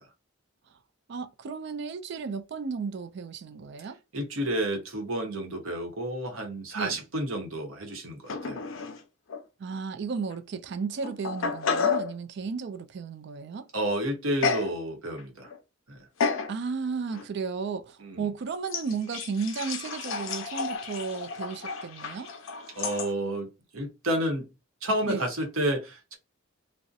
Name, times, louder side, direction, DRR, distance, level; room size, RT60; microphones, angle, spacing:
voice 1, 1.1-4.0 6.7-7.0 9.6-13.7 16.5-22.3 25.1-25.3, right 5 dB, 55° right, 0.4 m, -34 dB
voice 2, 4.1-8.6 13.7-15.5 15.9-16.0 18.0-18.3 22.8-24.5 24.8-26.2, right 1 dB, 75° right, 0.9 m, -30 dB
sound 1, 8.3-9.0 9.3-9.4 10.3-10.4 11.0-12.1 14.4-14.7 15.2-15.6 16.2-16.5 17.1-17.3 18.7-23.1, left 5 dB, 65° left, 0.5 m, -31 dB
2.7 x 2.0 x 2.4 m
head